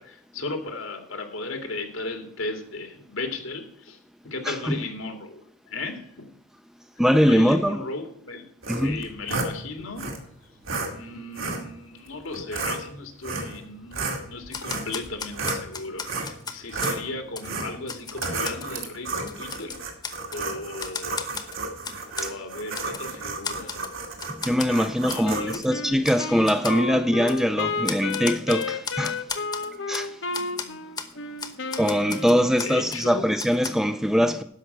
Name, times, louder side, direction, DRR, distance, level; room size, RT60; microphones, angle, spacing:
voice 1, 0.0-5.4 5.7-6.4 6.9-8.5 8.7-10.1 10.9-19.8 20.3-21.3 22.1-23.8 24.6-25.6 30.3-31.8 32.3-33.3, left 3 dB, 85° left, 2.3 m, -36 dB
voice 2, 7.0-7.8 8.7-9.0 24.3-29.2 29.9-30.2 31.8-34.4, equal, ahead, 0.5 m, -22 dB
sound 1, 8.6-9.5 10.0-10.2 10.6-10.9 11.3-11.6 12.3-12.8 13.2-13.6 13.9-15.7 16.0-16.4 16.7-17.0 17.4-17.7 18.1-25.5, right 3 dB, 80° right, 2.3 m, -32 dB
Typewriter, 14.5-17.0 17.4-17.5 17.9-18.7 19.1-20.4 20.8-22.3 22.7-23.1 23.4-23.9 24.2-24.7 25.1-25.2 25.5-25.7 26.0-26.2 26.5-26.8 27.3-27.4 27.8-30.1 30.3-30.7 31.0-31.1 31.4-33.0 33.4-33.7, left 5 dB, 20° left, 1.0 m, -34 dB
Wind instrument woodwind instrument, 25.2-32.7, left 4 dB, 60° left, 0.9 m, -32 dB
12.0 x 5.7 x 8.1 m
head